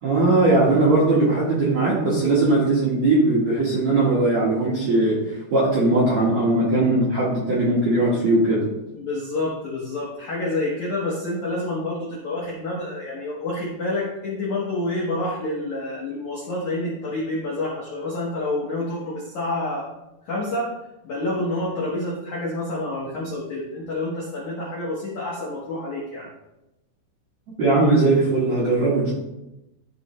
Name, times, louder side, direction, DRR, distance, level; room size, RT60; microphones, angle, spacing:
voice 1, 0.0-8.6 27.6-29.1, right 2 dB, 65° right, -8 dB, 1.7 m, -19 dB
voice 2, 8.9-19.9 20.2-20.8 21.0-26.3, left 2 dB, 75° left, -6 dB, 1.7 m, -28 dB
12.5 x 4.3 x 3.1 m, 0.95 s
omnidirectional pair, 5.4 m